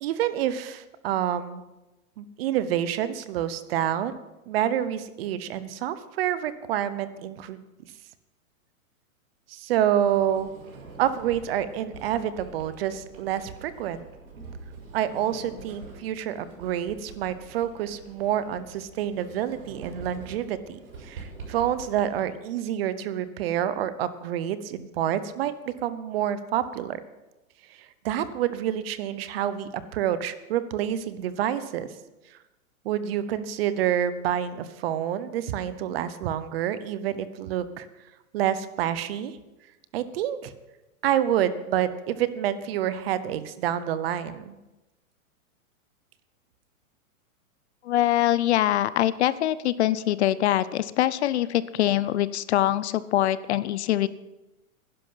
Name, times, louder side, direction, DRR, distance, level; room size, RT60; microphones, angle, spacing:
voice 1, 0.0-1.6 2.2-4.1 4.5-7.6 9.5-10.5 11.0-14.0 14.9-25.5 25.8-27.0 27.8-31.9 32.8-37.9 38.3-39.4 39.9-40.5 41.0-44.5, right 10 dB, 45° right, 14 dB, 0.9 m, -28 dB
Sliding door, 10.0-22.2, right 3 dB, 75° right, 5.8 m, -45 dB
voice 2, 47.8-54.1, left 13 dB, 50° left, 17 dB, 0.6 m, -23 dB
11.5 x 11.0 x 5.7 m, 1.0 s
hypercardioid pair, 150°, 42 cm